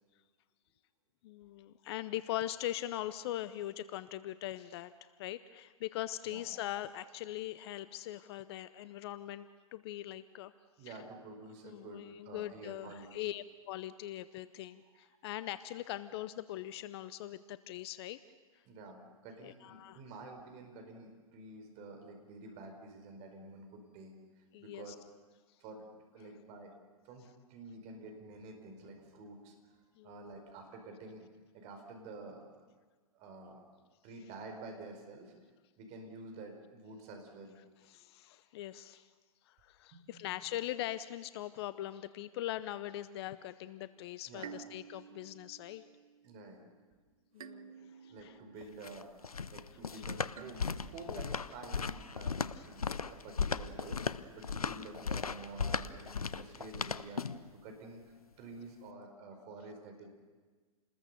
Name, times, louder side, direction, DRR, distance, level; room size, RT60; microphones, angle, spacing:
voice 1, 1.2-10.5 10.9-11.0 11.6-18.2 19.4-20.0 24.5-24.9 30.0-30.3 37.9-39.1 39.5-45.9 47.3-48.4 50.2-50.3 51.1-51.3 52.6-52.7, left 14 dB, 45° left, 15 dB, 0.8 m, -41 dB
voice 2, 10.8-13.3 18.6-24.1 24.6-25.0 25.6-25.9 26.1-26.7 27.0-29.5 30.0-31.3 31.5-32.6 33.1-33.7 34.0-35.3 35.8-37.5 37.9-38.0 39.9-40.3 44.3-44.6 46.2-46.6 48.0-54.0 54.3-57.2 57.5-60.1, right 3 dB, 35° right, 5 dB, 4.9 m, -49 dB
sound 1, 43.6-44.0 44.4-46.8 47.4-49.4 50.3-51.9, right 7 dB, 75° right, 1.0 m, -53 dB
sound 2, 48.6-57.5, left 5 dB, 90° left, 0.9 m, -37 dB
29.5 x 20.5 x 6.9 m, 1.4 s
hypercardioid pair, 115°, 18 cm